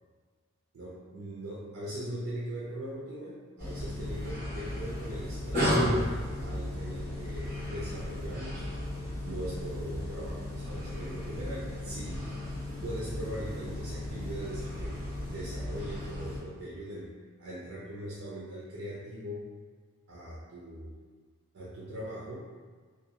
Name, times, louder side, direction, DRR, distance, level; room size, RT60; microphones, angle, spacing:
voice 1, 0.7-8.7 9.2-12.2 12.8-15.0 15.2-17.1 17.4-19.4 20.1-21.0 21.5-22.5, right 1 dB, 85° right, -7 dB, 0.5 m, -40 dB
sound 1, 3.6-16.4, left 1 dB, 45° right, 1.1 m, -34 dB
2.5 x 2.3 x 2.7 m, 1.5 s
head